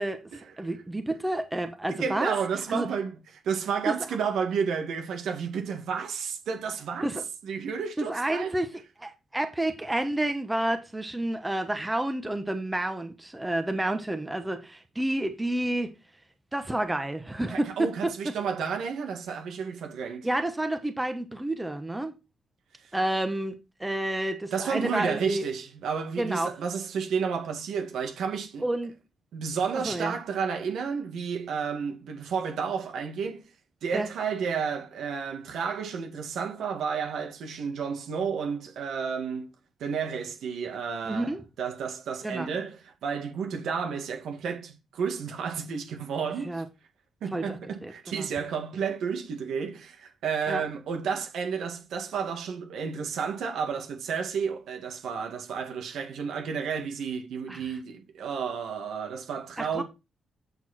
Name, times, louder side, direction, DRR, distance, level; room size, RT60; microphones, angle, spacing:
voice 1, 0.6-2.3 2.7-2.9 3.9-4.0 7.0-7.2 8.0-8.7 9.0-15.9 16.5-18.1 20.2-22.1 22.9-25.5 26.2-26.5 28.6-28.9 29.8-30.2 33.9-34.1 41.1-41.4 42.2-42.5 46.4-46.6 47.3-47.6 47.8-48.3 50.5-50.6 57.5-57.7 59.6-59.8, right 1 dB, 10° right, 1.1 m, -29 dB
voice 2, 1.9-3.2 3.4-7.0 7.4-8.6 17.5-20.3 24.5-28.7 29.3-33.4 33.8-39.5 39.8-46.6 47.2-59.8, right 6 dB, 85° right, 2.0 m, -31 dB
7.9 x 7.0 x 4.3 m
wide cardioid pair, 145°, 0 cm